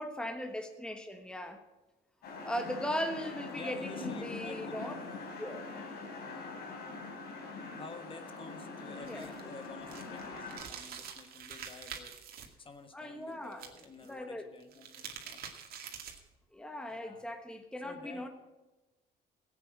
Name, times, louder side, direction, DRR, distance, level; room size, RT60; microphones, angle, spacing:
voice 1, 0.0-1.6 2.4-5.0 5.4-5.7 9.1-9.3 12.9-13.7 14.1-14.5 16.5-18.3, equal, 5° left, 5 dB, 1.2 m, -38 dB
sound 1, 2.2-10.6, left 3 dB, 70° left, 3.8 m, -43 dB
voice 2, 3.5-4.7 7.7-15.4 16.9-17.2 17.8-18.3, left 4 dB, 30° left, 8 dB, 1.4 m, -50 dB
sound 2, 9.0-12.5 13.5-14.1 14.6-16.3, right 7 dB, 60° right, 2.2 m, -46 dB
16.5 x 8.6 x 6.1 m, 1.1 s
cardioid pair, 110°, 17 cm